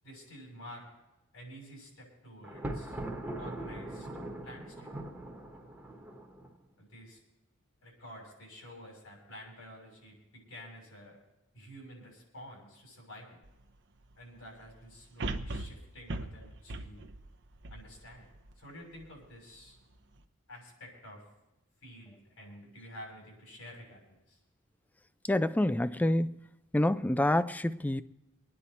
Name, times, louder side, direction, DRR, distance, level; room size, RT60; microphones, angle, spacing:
voice 1, 0.0-0.9 1.3-3.0 3.4-4.1 4.4-4.9 6.8-7.2 7.8-11.2 11.5-13.4 14.1-17.0 17.7-18.2 18.5-19.8 20.5-21.2 21.8-24.4, equal, 85° left, 6.8 m, -50 dB
Thunder, 2.4-6.6, right 1 dB, 10° right, 1.2 m, -41 dB
sound 1, 13.5-13.6 15.2-18.5 19.0-19.1, right 2 dB, 60° right, 0.8 m, -39 dB
voice 2, 25.2-26.5 26.7-28.0, left 1 dB, 10° left, 0.4 m, -27 dB
24.0 x 9.9 x 4.2 m
head